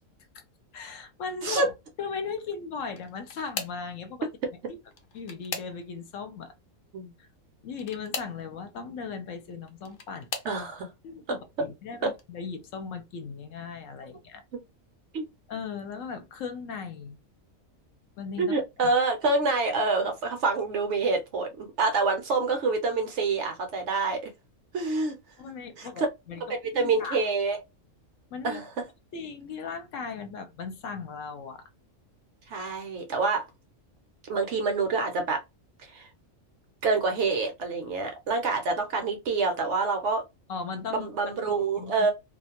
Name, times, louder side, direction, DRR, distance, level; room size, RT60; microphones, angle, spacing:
voice 1, 0.7-1.7 2.0-4.3 4.7-4.8 5.1-6.5 7.2-7.3 7.6-10.3 11.0-14.4 15.5-17.2 18.2-18.5 18.8-18.9 25.4-27.3 28.3-28.6 29.1-31.6 40.5-42.1, left 5 dB, 75° left, 0.9 m, -37 dB
sound 1, 2.9-3.9 4.8-6.1 7.7-8.4 9.5-10.6 11.3-11.7 12.1-12.2 13.6-13.7, left 5 dB, 60° left, 0.6 m, -38 dB
voice 2, 10.4-10.9 15.1-15.3 18.4-24.2 24.7-25.2 25.8-25.9 26.7-27.6 28.4-28.7 32.5-33.5 34.2-35.4 35.8-36.1 36.8-40.2 40.9-42.1, right 3 dB, 65° right, 0.9 m, -27 dB
2.4 x 2.1 x 2.8 m
omnidirectional pair, 1.4 m